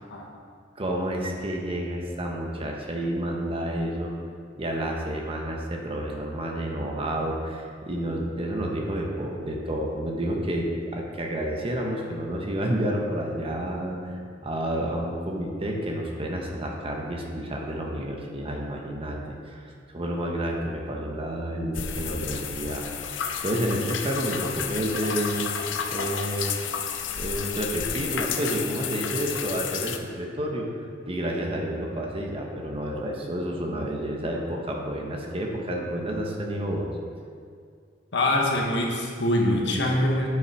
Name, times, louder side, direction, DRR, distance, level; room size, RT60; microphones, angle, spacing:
voice 1, 0.8-4.1 4.5-25.5 25.9-26.6 27.2-30.7 31.0-36.9, right 1 dB, 30° right, 0 dB, 1.0 m, -30 dB
sound 1, 21.7-30.0, left 7 dB, 85° left, 0.6 m, -31 dB
voice 2, 38.1-40.3, left 1 dB, 65° left, 0 dB, 1.2 m, -24 dB
8.4 x 5.4 x 4.8 m, 2.2 s
head